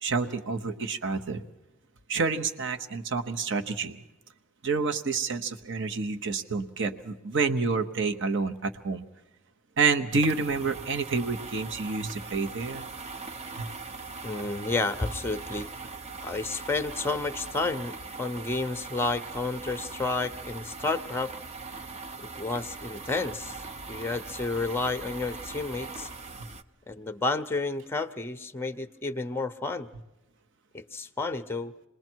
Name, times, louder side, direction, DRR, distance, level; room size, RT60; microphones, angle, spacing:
voice 1, 0.0-1.4 2.1-4.0 4.6-9.0 9.8-12.9 13.6-13.7, right 4 dB, 60° right, 7 dB, 1.0 m, -28 dB
sound 1, 10.1-26.6, right 3 dB, 30° right, 0.8 m, -41 dB
voice 2, 14.2-15.7 16.2-21.3 22.4-23.5 23.9-26.1 26.9-29.9 30.7-31.7, left 3 dB, 10° left, 10 dB, 0.7 m, -31 dB
28.0 x 20.5 x 4.6 m, 1.0 s
head